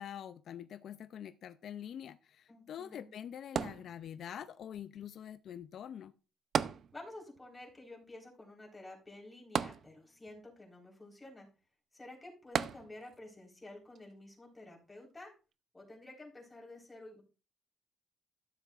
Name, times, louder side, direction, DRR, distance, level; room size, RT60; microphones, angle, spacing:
voice 1, 0.0-6.1, left 9 dB, 65° left, 0.4 m, -45 dB
voice 2, 2.5-3.1 6.9-11.5 11.9-15.3 15.7-17.2, left 2 dB, 15° left, 3.9 m, -51 dB
sound 1, 3.6-4.5 6.5-7.4 7.7-7.8 9.6-10.4 12.5-13.3 14.0-14.1, right 8 dB, 60° right, 0.5 m, -35 dB
13.0 x 7.3 x 2.4 m
cardioid pair, 90°, 0 cm